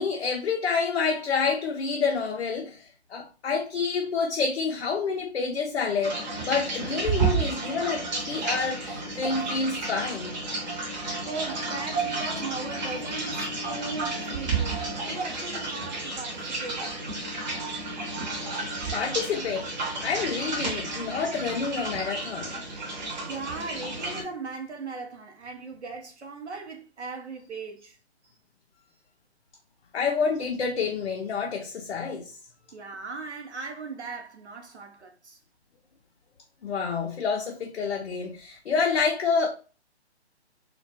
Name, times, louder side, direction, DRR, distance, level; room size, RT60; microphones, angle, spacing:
voice 1, 0.0-10.4 18.9-19.7 20.0-22.6 29.9-32.4 36.6-39.5, left 5 dB, 75° left, 0.5 m, -28 dB
sound 1, 6.0-24.2, right 3 dB, 40° right, 0.8 m, -31 dB
voice 2, 11.2-14.8 15.1-17.0 23.3-28.0 32.7-35.4, right 4 dB, 90° right, 0.7 m, -38 dB
2.2 x 2.1 x 2.7 m
figure-of-eight pair, 135°, 34 cm